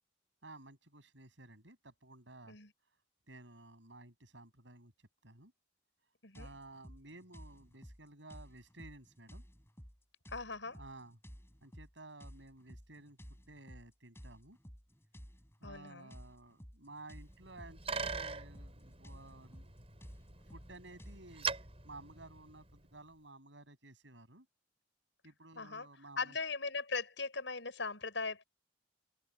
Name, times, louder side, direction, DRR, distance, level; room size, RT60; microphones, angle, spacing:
voice 1, 0.4-2.6 3.3-4.9 5.2-5.5 6.4-9.4 10.7-11.2 11.6-14.6 15.6-19.7 20.3-21.5 21.8-24.5 25.2-26.4, right 2 dB, 80° right, 7.2 m, -54 dB
sound 1, 6.3-21.2, equal, 15° left, 7.4 m, -54 dB
voice 2, 10.3-10.8 15.6-16.1 25.5-25.9 26.2-28.4, left 4 dB, 85° left, 6.0 m, -39 dB
Bicycle, 17.2-22.9, right 4 dB, 30° right, 7.8 m, -43 dB
head